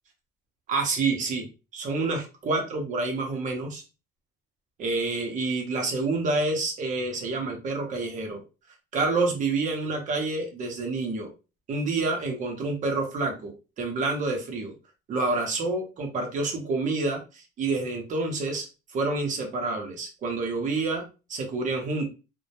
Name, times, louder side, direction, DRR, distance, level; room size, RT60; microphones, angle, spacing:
voice 1, 0.7-1.5 1.7-3.8 4.8-8.4 8.9-11.3 11.7-14.7 15.1-21.0 21.3-22.1, right 3 dB, 45° right, 2 dB, 0.7 m, -28 dB
2.1 x 2.1 x 2.7 m, 0.31 s
cardioid pair, 155°, 18 cm